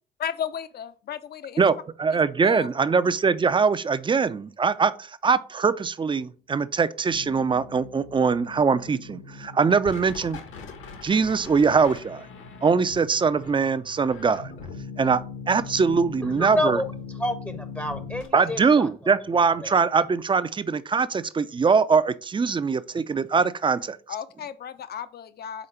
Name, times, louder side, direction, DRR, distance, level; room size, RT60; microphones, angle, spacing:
voice 1, 0.2-1.6 2.4-2.7 24.1-25.7, left 8 dB, 50° left, 0.7 m, -34 dB
voice 2, 1.6-10.4 11.0-12.3 12.6-14.5 15.0-15.2 15.5-16.8 18.3-24.0, right 5 dB, 25° right, 0.5 m, -22 dB
sound 1, 7.1-18.3, left 5 dB, 70° left, 1.4 m, -40 dB
voice 3, 16.3-16.8 17.2-19.2 19.6-19.7, left 1 dB, 10° left, 0.8 m, -29 dB
5.1 x 3.9 x 5.6 m
supercardioid pair, 70°, 21 cm